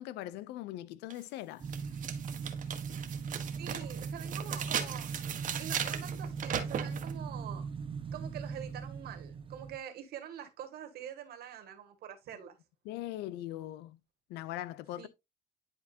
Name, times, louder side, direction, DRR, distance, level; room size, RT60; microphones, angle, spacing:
voice 1, 0.0-1.6 12.9-14.0 14.3-15.1, left 14 dB, 90° left, 0.6 m, -40 dB
sound 1, 1.1-1.2 1.7-7.1, right 8 dB, 50° right, 1.4 m, -38 dB
sound 2, 1.6-9.8, right 5 dB, 30° right, 0.8 m, -39 dB
voice 2, 3.6-5.1 5.6-7.7 8.1-12.6 15.0-15.1, right 9 dB, 70° right, 1.9 m, -45 dB
10.5 x 4.4 x 2.8 m
cardioid pair, 110°, 17 cm